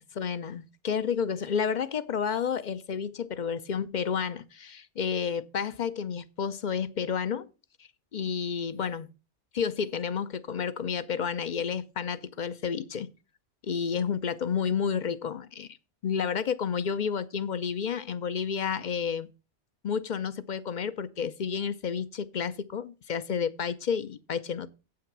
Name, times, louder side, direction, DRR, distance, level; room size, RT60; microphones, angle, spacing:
voice 1, 0.2-7.5 8.1-9.1 9.5-13.1 13.6-15.7 16.0-19.3 19.8-24.7, left 6 dB, 50° left, 0.7 m, -30 dB
8.5 x 5.9 x 6.1 m
omnidirectional pair, 1.1 m